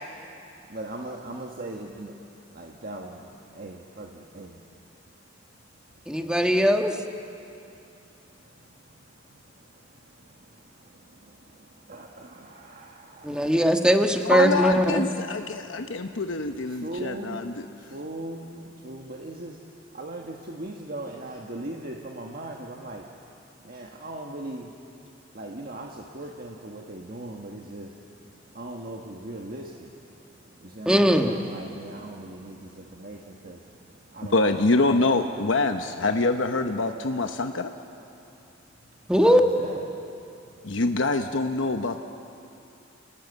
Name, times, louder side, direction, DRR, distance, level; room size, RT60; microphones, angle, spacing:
voice 1, 0.7-2.1 2.5-3.2 3.5-4.6 6.2-6.3 11.9-13.4 16.7-17.6 17.9-19.6 19.9-23.0 23.6-24.7 25.3-27.9 28.5-29.9 30.6-33.6 34.1-35.0 39.1-39.8, right 1 dB, 50° right, 0 dB, 1.6 m, -39 dB
voice 2, 6.1-6.9 13.2-15.0 30.8-31.3 39.1-39.4, equal, 5° right, 4 dB, 1.4 m, -20 dB
voice 3, 14.2-17.7 34.3-37.7 40.6-42.0, left 2 dB, 85° left, 6 dB, 1.0 m, -25 dB
29.5 x 20.0 x 8.2 m, 2.6 s
head